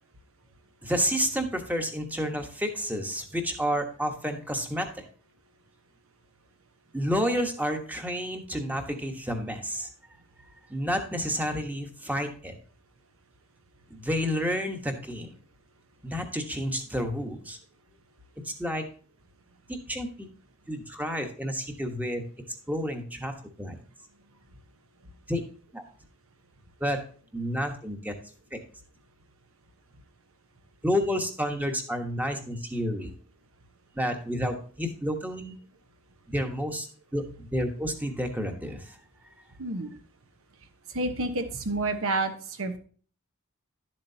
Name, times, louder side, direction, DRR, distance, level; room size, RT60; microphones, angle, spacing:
voice 1, 0.8-5.0 6.9-9.9 10.7-12.6 13.9-15.3 16.0-17.6 18.4-18.8 19.7-20.3 20.7-22.2 22.7-23.8 25.3-25.4 25.7-25.8 26.8-27.0 27.3-28.1 28.5-28.6 30.8-33.1 33.9-35.5 36.3-36.9 37.1-39.3, equal, 10° right, 4 dB, 1.2 m, -30 dB
voice 2, 39.6-39.9 40.9-42.8, right 2 dB, 70° right, 8 dB, 1.2 m, -29 dB
11.5 x 7.5 x 2.8 m, 0.42 s
head